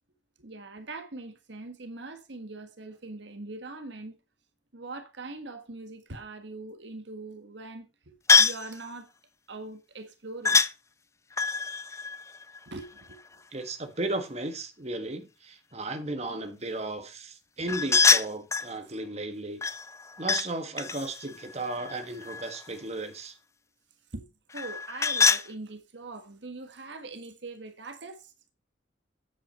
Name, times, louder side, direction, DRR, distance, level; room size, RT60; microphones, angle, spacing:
voice 1, 0.4-4.2 4.7-9.1 9.5-10.6 12.7-13.2 24.1-24.3 24.5-28.3, right 2 dB, 70° right, 1.5 m, -42 dB
sound 1, 8.3-8.7 10.5-10.7 11.3-13.1 17.7-18.7 19.6-20.5 20.8-22.7 24.5-25.5, left 5 dB, 15° left, 0.5 m, -25 dB
voice 2, 13.5-19.6 20.2-23.4, right 2 dB, 35° right, 1.6 m, -35 dB
9.2 x 8.5 x 4.3 m
head